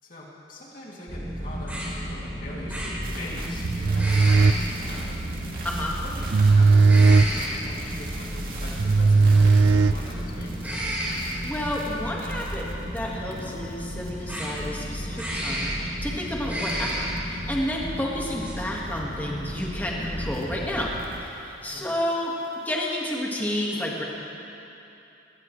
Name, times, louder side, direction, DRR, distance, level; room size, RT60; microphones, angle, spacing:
voice 1, 0.0-5.2 6.0-10.6 21.6-22.0, left 1 dB, 45° left, -5 dB, 2.8 m, -42 dB
sound 1, 1.1-21.0, equal, 10° right, 3.2 m, -32 dB
sound 2, 3.0-14.1 14.5-15.0 16.0-16.2 16.7-17.2 17.5-17.6 19.0-19.2 20.3-21.3 21.9-22.6, right 3 dB, 45° right, 2.3 m, -44 dB
sound 3, 3.6-10.5, right 4 dB, 90° right, 0.5 m, -19 dB
voice 2, 11.4-12.6 12.9-20.9 21.2-22.3 22.6-24.0, left 1 dB, 10° left, -3 dB, 1.8 m, -30 dB
20.0 x 18.5 x 3.3 m, 2.9 s
head